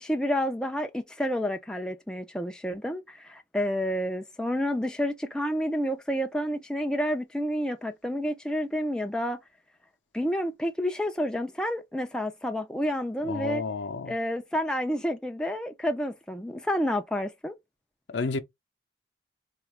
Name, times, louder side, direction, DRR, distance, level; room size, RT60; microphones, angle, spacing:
voice 1, 0.0-9.4 10.1-13.6 14.1-17.5, equal, 5° left, 0.3 m, -29 dB
voice 2, 13.2-14.2 18.1-18.4, left 4 dB, 75° left, 0.6 m, -31 dB
4.3 x 2.4 x 3.1 m
head